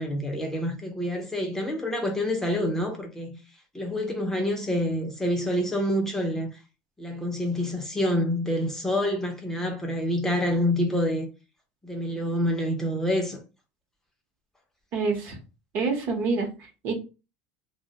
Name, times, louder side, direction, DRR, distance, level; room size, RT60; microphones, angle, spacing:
voice 1, 0.0-3.4 3.7-6.6 7.0-11.3 11.8-13.4, left 1 dB, 10° left, 0.4 m, -27 dB
voice 2, 14.9-15.4 15.7-16.9, right 4 dB, 50° right, 0.7 m, -27 dB
2.2 x 2.0 x 2.7 m
supercardioid pair, 140°, 5 cm